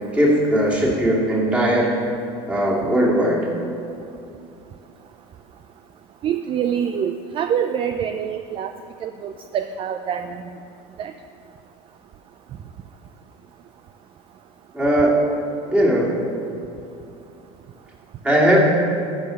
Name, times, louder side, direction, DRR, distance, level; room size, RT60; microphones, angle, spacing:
voice 1, 0.1-1.9 2.5-3.5 14.7-15.2 15.7-16.2 18.2-18.7, equal, 10° right, -4 dB, 2.6 m, -18 dB
voice 2, 6.2-8.7 9.0-10.4 11.0-11.1, right 8 dB, 35° right, 8 dB, 0.5 m, -25 dB
13.5 x 5.7 x 6.5 m, 2.7 s
supercardioid pair, 120°, 15 cm